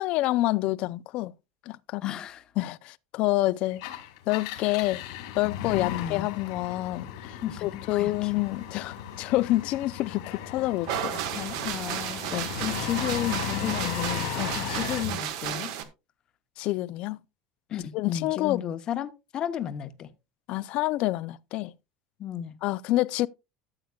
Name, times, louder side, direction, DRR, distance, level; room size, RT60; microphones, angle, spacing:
voice 1, 0.0-1.3 1.7-2.1 2.6-3.8 4.3-5.0 5.3-11.2 12.3-12.5 14.4-14.5 16.6-17.2 17.9-18.6 20.5-21.7 22.6-23.3, left 17 dB, 50° left, 0.4 m, -28 dB
voice 2, 2.0-2.4 5.9-6.3 7.4-8.3 11.3-15.7 17.7-20.1 22.2-22.6, left 10 dB, 30° left, 0.9 m, -34 dB
Engine, 3.7-15.2, left 10 dB, 80° left, 2.6 m, -36 dB
sound 1, 10.8-15.8, right 10 dB, 75° right, 1.5 m, -33 dB
13.5 x 7.8 x 2.3 m
cardioid pair, 160°, 3 cm